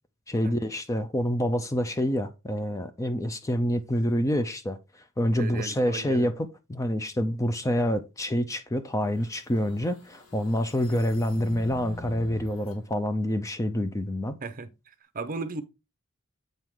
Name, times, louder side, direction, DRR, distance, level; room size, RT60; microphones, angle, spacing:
voice 1, 0.3-14.4, equal, 15° left, 0.5 m, -27 dB
voice 2, 5.4-6.3 14.4-14.7 15.1-15.6, right 3 dB, 40° right, 0.7 m, -35 dB
sound 1, 9.0-12.8, left 3 dB, 75° left, 1.9 m, -44 dB
7.9 x 4.7 x 3.7 m
head